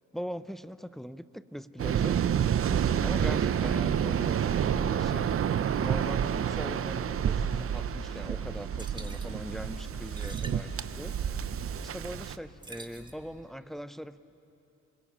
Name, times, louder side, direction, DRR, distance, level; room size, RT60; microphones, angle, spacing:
voice 1, 0.1-2.2 3.0-5.4 5.8-14.2, equal, ahead, 13 dB, 0.7 m, -41 dB
Waves surf, 1.8-12.4, right 8 dB, 45° right, 0.8 m, -29 dB
sound 1, 3.5-11.5, left 5 dB, 60° left, 2.2 m, -53 dB
sound 2, 8.6-13.5, right 2 dB, 15° right, 1.7 m, -50 dB
26.0 x 21.0 x 8.8 m, 2.9 s
cardioid pair, 90°, 30 cm